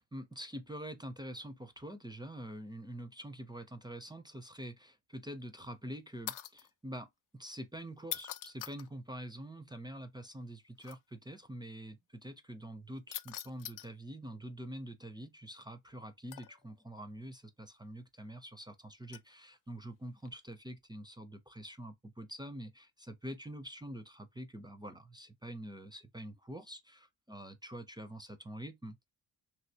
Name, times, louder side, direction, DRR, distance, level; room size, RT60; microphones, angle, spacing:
voice 1, 0.0-7.1 7.3-29.0, right 1 dB, 10° right, 0.5 m, -46 dB
sound 1, 6.3-6.7 8.0-8.9 10.8-11.0 13.1-13.9 16.3-16.7 19.1-19.3 20.3-20.5, left 12 dB, 45° left, 0.4 m, -43 dB
3.4 x 2.8 x 2.7 m
cardioid pair, 90°, 50 cm